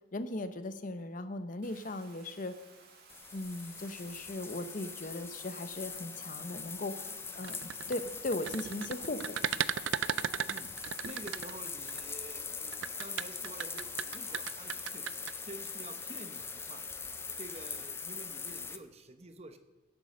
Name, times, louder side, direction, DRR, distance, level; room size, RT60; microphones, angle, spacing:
voice 1, 0.1-2.6 3.3-9.6, left 2 dB, 45° left, 11 dB, 0.9 m, -38 dB
Bathtub (filling or washing), 1.6-17.9, right 4 dB, 55° right, 2.4 m, -58 dB
sound 1, 3.1-18.8, left 5 dB, 15° left, 0.5 m, -42 dB
sound 2, 7.3-12.0 12.7-15.3, right 9 dB, 75° right, 0.4 m, -35 dB
voice 2, 11.0-15.1 15.4-16.9 17.4-19.6, right 2 dB, 35° right, 9 dB, 0.9 m, -49 dB
16.0 x 8.4 x 6.4 m, 1.1 s
head